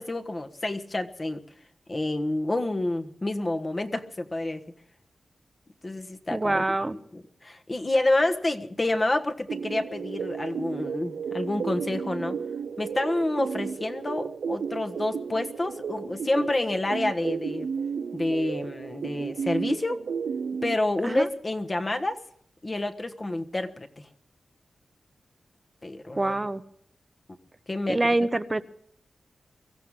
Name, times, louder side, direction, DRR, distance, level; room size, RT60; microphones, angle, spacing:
voice 1, 0.0-1.4 1.9-4.6 5.8-6.8 7.1-12.4 12.8-17.7 18.1-20.0 20.6-22.2 22.6-24.1 25.8-26.4 27.7-28.1, left 2 dB, 30° left, 6 dB, 1.4 m, -28 dB
voice 2, 6.3-7.0 21.0-21.3 26.2-26.6 27.9-28.6, right 2 dB, 25° right, 12 dB, 0.8 m, -25 dB
sound 1, 9.5-20.8, right 6 dB, 85° right, 0.5 m, -33 dB
23.5 x 15.0 x 3.7 m, 0.66 s
wide cardioid pair, 90°, 0 cm